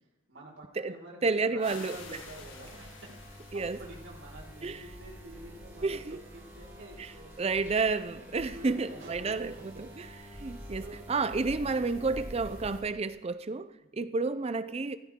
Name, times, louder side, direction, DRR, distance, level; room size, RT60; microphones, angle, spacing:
voice 1, 0.3-7.7 8.5-9.8 10.6-11.1 11.8-12.0 13.8-14.1, right 1 dB, 65° right, 5.0 m, -49 dB
voice 2, 1.2-2.0 3.5-3.8 4.6-4.8 5.8-6.2 7.0-7.1 7.4-10.1 10.4-13.7 13.9-15.0, right 4 dB, 30° right, 0.4 m, -30 dB
sound 1, 1.6-5.3, left 5 dB, 65° left, 1.7 m, -51 dB
sound 2, 1.9-12.8, equal, 15° right, 4.3 m, -47 dB
15.5 x 15.5 x 3.7 m
head